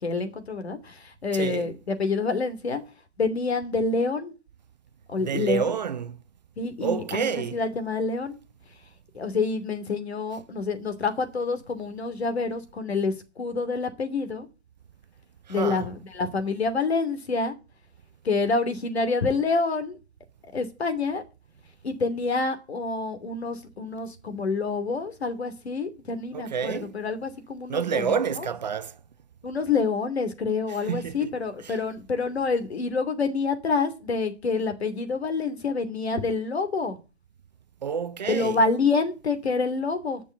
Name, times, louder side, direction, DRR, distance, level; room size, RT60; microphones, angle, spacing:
voice 1, 0.0-2.8 3.2-4.3 5.1-5.7 6.6-8.4 9.1-14.5 15.5-17.5 18.2-20.0 20.5-21.2 21.8-28.5 29.4-37.0 38.2-40.2, left 4 dB, 65° left, 2.8 m, -27 dB
voice 2, 1.3-1.7 5.2-6.2 6.8-7.6 15.5-15.8 26.3-27.0 27.7-29.0 30.9-31.2 31.6-31.8 37.8-38.6, right 7 dB, 40° right, 0.7 m, -28 dB
11.5 x 6.3 x 8.1 m
hypercardioid pair, 150°, 34 cm